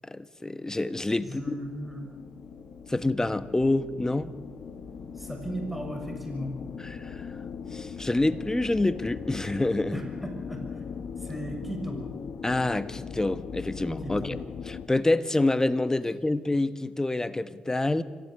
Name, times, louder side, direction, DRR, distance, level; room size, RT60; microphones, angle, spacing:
voice 1, 0.0-1.5 2.9-4.3 6.9-7.4 7.7-10.0 12.4-14.4 14.7-18.0, left 2 dB, 20° left, 13 dB, 1.4 m, -27 dB
sound 1, 1.0-14.9, left 6 dB, 65° left, 1.5 m, -40 dB
voice 2, 1.2-2.0 5.1-6.5 9.9-10.8 11.2-12.0 14.0-14.3, equal, 5° right, 3 dB, 6.6 m, -36 dB
25.0 x 16.0 x 8.2 m, 1.5 s
hypercardioid pair, 45°, 3 cm